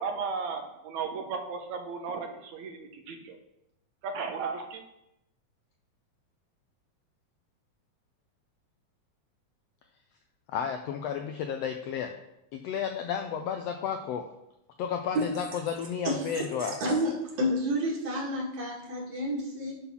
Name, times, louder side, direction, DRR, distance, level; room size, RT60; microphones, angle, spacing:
voice 1, 0.0-3.4 4.0-4.8, right 5 dB, 75° right, 4 dB, 2.2 m, -35 dB
voice 2, 10.5-12.1 12.5-14.2 14.8-16.8, left 7 dB, 90° left, 5 dB, 1.4 m, -32 dB
voice 3, 16.6-17.1 17.4-19.7, equal, 60° right, -3 dB, 3.3 m, -29 dB
11.5 x 3.9 x 5.9 m, 0.87 s
omnidirectional pair, 3.5 m